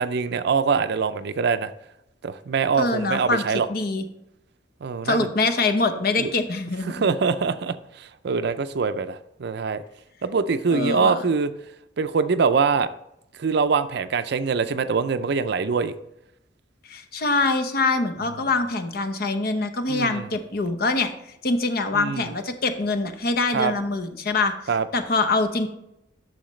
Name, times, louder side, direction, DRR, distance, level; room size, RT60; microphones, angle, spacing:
voice 1, 0.0-1.7 2.2-3.7 4.8-5.3 6.2-6.3 6.9-9.8 10.2-11.5 12.0-12.9 13.4-15.9 19.9-20.3 21.9-22.3 23.5-23.7 24.7-24.8, right 5 dB, 65° right, 11 dB, 0.5 m, -24 dB
voice 2, 2.8-3.4 3.7-4.0 5.0-7.0 10.7-11.2 16.8-21.1 21.4-24.5 24.9-25.7, left 3 dB, 60° left, 8 dB, 0.9 m, -24 dB
10.0 x 6.5 x 3.2 m, 0.82 s
head